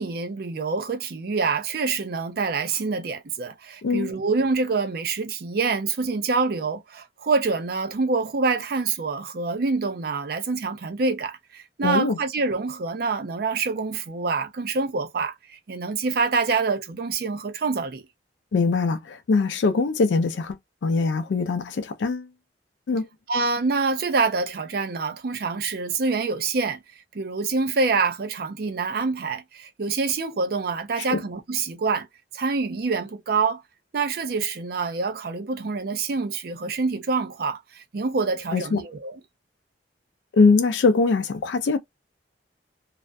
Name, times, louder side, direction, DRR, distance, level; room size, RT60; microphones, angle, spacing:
voice 1, 0.0-18.0 23.3-26.8 27.1-32.1 32.3-33.6 33.9-39.2, right 4 dB, 60° right, 0.5 m, -26 dB
voice 2, 11.8-12.2 18.5-22.3 22.9-23.1 31.0-31.2 38.5-38.8 40.3-41.8, left 4 dB, 85° left, 0.4 m, -22 dB
2.4 x 2.2 x 2.4 m
head